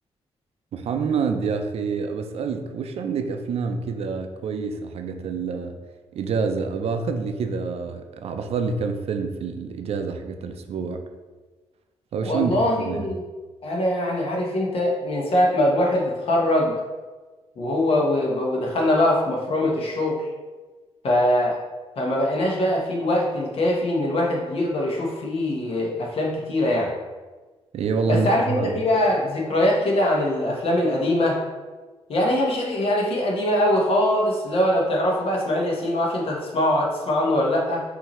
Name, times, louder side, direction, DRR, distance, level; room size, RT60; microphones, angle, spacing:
voice 1, 0.7-5.7 6.1-11.0 12.1-13.1 27.7-28.8, right 5 dB, 65° right, 6 dB, 0.4 m, -27 dB
voice 2, 12.2-13.2 13.6-16.8 17.6-20.3 21.0-21.6 22.0-26.9 28.0-31.4 32.1-37.8, left 1 dB, 60° left, -1 dB, 1.1 m, -22 dB
5.5 x 2.7 x 3.0 m, 1.3 s
cardioid pair, 95°, 11 cm